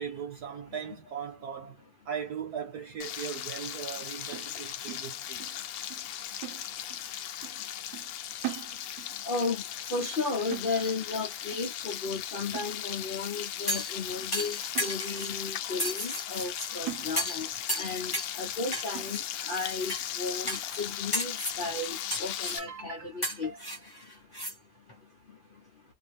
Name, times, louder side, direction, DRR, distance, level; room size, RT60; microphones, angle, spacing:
voice 1, 0.0-5.4 22.6-23.6, right 7 dB, 65° right, 1.3 m, -39 dB
Frying (food), 3.0-22.6, left 11 dB, 75° left, 1.1 m, -37 dB
sound 1, 4.3-5.6 5.9-6.1 6.4-7.1 7.4-7.7 7.9-9.2 9.5-9.7 10.0-11.2 11.5-11.8 12.1-12.2 12.5-13.2 13.7-13.8 14.2-14.3 14.7-15.4 15.8-15.9 16.4-16.5 16.9-17.6 17.9-18.0 18.4-18.6 18.9-19.5 20.0-20.1 20.4-20.7, right 16 dB, 85° right, 1.3 m, -42 dB
voice 2, 9.2-9.6 9.9-17.5 17.8-23.5, left 3 dB, 50° left, 0.6 m, -34 dB
sound 2, 13.7-14.0 14.3-15.3 15.8-16.7 17.2-17.4 17.7-18.3 18.7-19.2 19.9-20.0 20.5-20.8 21.1-21.6 22.1-22.6 23.2-24.5 24.9-25.0, equal, 15° left, 1.1 m, -33 dB
2.8 x 2.7 x 3.3 m
omnidirectional pair, 1.9 m